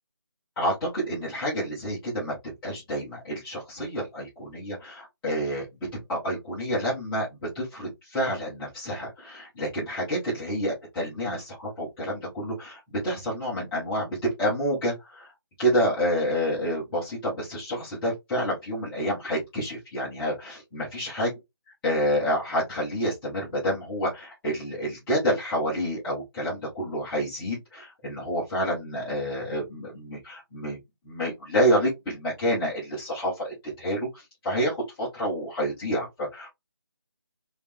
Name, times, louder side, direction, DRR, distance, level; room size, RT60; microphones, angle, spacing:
voice 1, 0.6-5.6 6.1-7.3 7.5-15.3 15.6-21.3 21.8-30.8 31.1-36.5, equal, 5° left, -10 dB, 0.7 m, -28 dB
3.6 x 3.1 x 3.2 m, 0.19 s
figure-of-eight pair, 170°, 14 cm